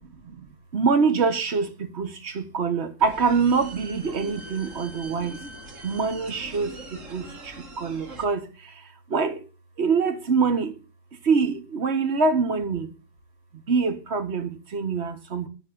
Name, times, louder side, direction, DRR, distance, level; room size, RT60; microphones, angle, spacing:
voice 1, 0.7-1.7 2.0-5.3 5.8-6.7 7.1-7.2 7.8-8.4 9.1-9.4 9.8-10.7 11.3-12.9 13.7-15.5, right 5 dB, 55° right, 1.5 m, -24 dB
sound 1, 3.0-8.2, right 1 dB, 80° right, 2.3 m, -42 dB
11.0 x 5.6 x 6.7 m
omnidirectional pair, 1.3 m